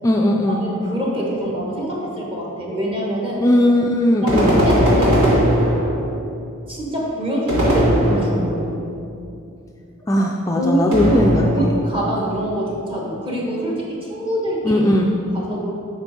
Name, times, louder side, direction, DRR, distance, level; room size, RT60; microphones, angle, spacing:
voice 1, 0.0-0.6 3.4-4.6 10.1-11.4 14.6-15.1, left 1 dB, 15° left, 0 dB, 0.3 m, -17 dB
voice 2, 0.6-3.5 4.2-5.3 6.7-8.7 10.5-14.8 15.2-15.7, right 1 dB, 25° right, -3 dB, 1.4 m, -25 dB
sound 1, 4.3-6.2 7.5-8.7 10.9-11.9, equal, 75° right, 1.6 m, -18 dB
7.9 x 5.2 x 4.2 m, 2.5 s
head